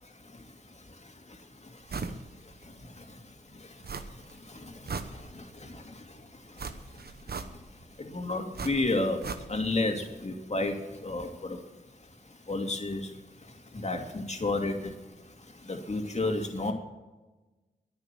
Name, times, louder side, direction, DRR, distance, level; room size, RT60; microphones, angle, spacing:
sound 1, 1.9-2.2 2.6-2.7 3.8-4.4 4.7-5.6 6.6-7.8 8.5-9.8 10.1-10.2, right 4 dB, 60° right, 1.1 m, -38 dB
voice 1, 5.2-5.9 8.0-9.2 9.5-11.6 12.5-13.1 13.7-14.9 15.7-16.7, left 2 dB, 40° left, 3 dB, 2.6 m, -31 dB
10.5 x 9.6 x 7.6 m, 1.1 s
cardioid pair, 40°, 18 cm